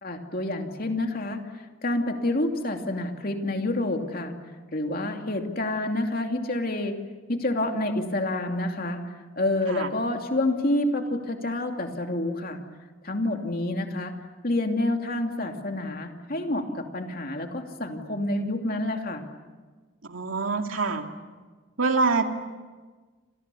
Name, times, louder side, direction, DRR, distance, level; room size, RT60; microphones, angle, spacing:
voice 1, 0.0-1.4 1.8-4.3 4.7-7.0 7.3-9.0 9.4-12.6 13.0-14.1 14.4-19.2, left 1 dB, 45° left, 3 dB, 2.8 m, -28 dB
voice 2, 20.1-21.0 21.8-22.2, right 4 dB, 85° right, 4 dB, 2.4 m, -25 dB
29.5 x 27.0 x 7.0 m, 1.4 s
head